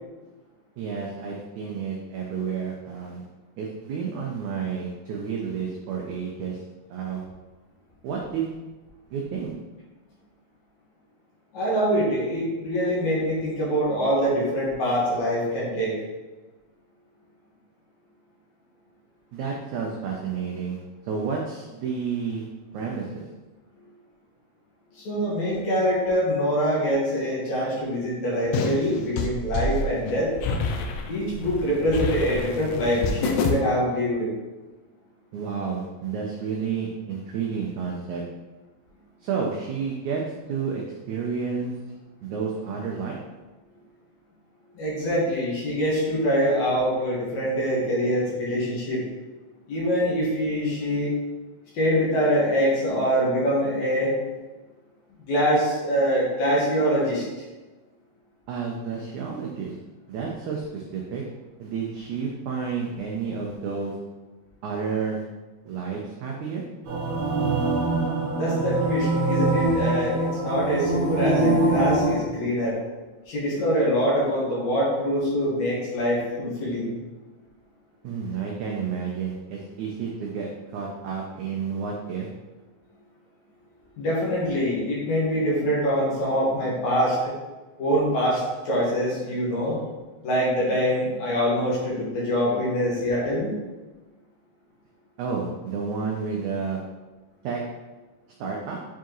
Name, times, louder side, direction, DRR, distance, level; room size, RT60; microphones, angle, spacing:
voice 1, 0.8-3.2 3.6-6.6 6.9-7.2 8.0-8.5 9.1-9.5 19.3-20.8 21.1-22.4 22.7-23.3 35.3-38.2 39.2-40.2 40.5-41.8 42.2-43.2 58.5-59.7 60.1-61.2 61.6-63.9 64.6-65.2 65.6-66.6 78.0-82.3 95.2-96.8 97.4-97.6 98.4-98.8, right 6 dB, 90° right, -1 dB, 1.6 m, -30 dB
voice 2, 11.5-15.9 25.0-30.3 31.1-34.3 44.7-49.0 49.7-51.1 51.7-54.2 55.3-57.2 68.3-72.8 73.3-76.9 84.0-87.3 87.8-89.8 90.2-93.5, equal, 55° left, -6 dB, 2.6 m, -24 dB
sound 1, 28.5-33.5, left 3 dB, 80° left, 2.3 m, -28 dB
sound 2, 66.8-72.2, right 2 dB, 60° right, 2.6 m, -24 dB
7.0 x 4.6 x 3.0 m, 1.2 s
omnidirectional pair, 4.2 m